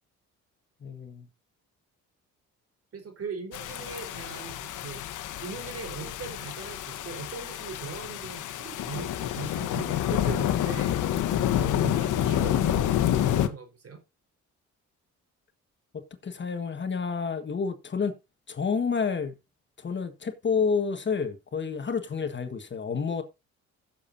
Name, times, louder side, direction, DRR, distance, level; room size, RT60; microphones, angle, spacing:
voice 1, 0.8-1.3 11.7-11.9 16.2-18.1 18.5-19.3 19.8-23.2, left 5 dB, 40° left, 1.5 m, -29 dB
voice 2, 2.9-5.0 5.4-10.9 11.5-14.0, right 5 dB, 50° right, 4.1 m, -40 dB
sound 1, 3.5-13.5, left 11 dB, 80° left, 1.1 m, -28 dB
16.0 x 7.3 x 2.7 m
cardioid pair, 90°, 30 cm